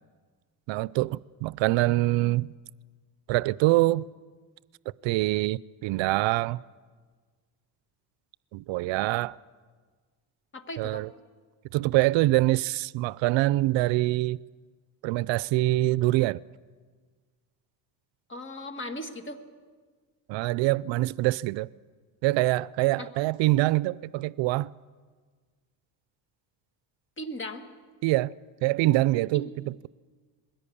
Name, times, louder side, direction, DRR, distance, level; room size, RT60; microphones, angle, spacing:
voice 1, 0.7-2.5 3.3-4.1 5.0-6.6 8.5-9.4 10.8-11.1 11.7-14.4 15.0-16.4 20.3-21.7 22.2-24.7 28.0-28.3 28.6-29.9, right 18 dB, 80° right, 0.5 m, -25 dB
voice 2, 10.5-11.0 18.3-19.4 23.0-23.1 27.2-27.6 29.3-29.5, left 1 dB, 25° left, 1.7 m, -37 dB
21.5 x 16.5 x 8.5 m
cardioid pair, 115°, 45 cm